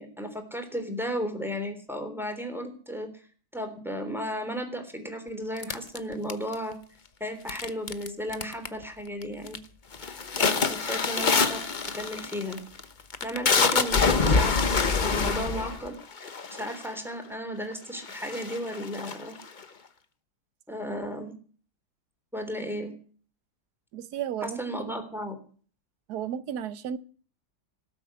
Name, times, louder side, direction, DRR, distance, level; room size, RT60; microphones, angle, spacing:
voice 1, 0.0-3.3 3.5-6.8 7.2-9.6 10.4-11.6 11.9-12.6 13.2-19.3 20.7-21.3 22.3-22.9 24.4-25.4, equal, ahead, 3.4 m, -34 dB
sound 1, 5.6-6.7 7.5-8.1 8.3-8.8 9.2-9.6 9.9-17.0 17.6-17.7 18.0-19.6, left 4 dB, 35° left, 1.0 m, -26 dB
voice 2, 23.9-25.0 26.1-27.0, right 9 dB, 65° right, 1.5 m, -34 dB
18.5 x 7.9 x 8.3 m
omnidirectional pair, 1.9 m